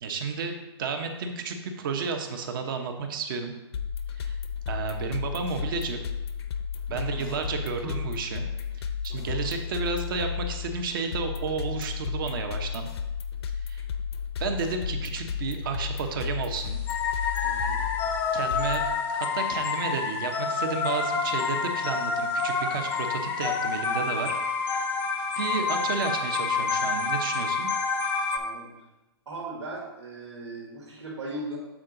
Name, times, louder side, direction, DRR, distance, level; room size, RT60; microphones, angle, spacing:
voice 1, 0.0-3.5 4.2-4.4 4.7-6.0 6.9-8.5 8.8-12.9 13.7-13.8 14.4-16.8 18.3-24.4 24.6-24.9 25.4-27.7, right 5 dB, 50° right, 5 dB, 1.0 m, -32 dB
sound 1, 3.7-19.0, left 7 dB, 65° left, 0.7 m, -33 dB
voice 2, 6.9-7.4 7.8-7.9 9.1-9.4 17.4-17.8 28.3-28.7 29.3-31.6, right 2 dB, 85° right, -3 dB, 2.0 m, -39 dB
sound 2, 16.9-28.4, left 5 dB, 15° left, 0.4 m, -28 dB
7.5 x 4.6 x 3.8 m, 0.99 s
hypercardioid pair, 150°, 14 cm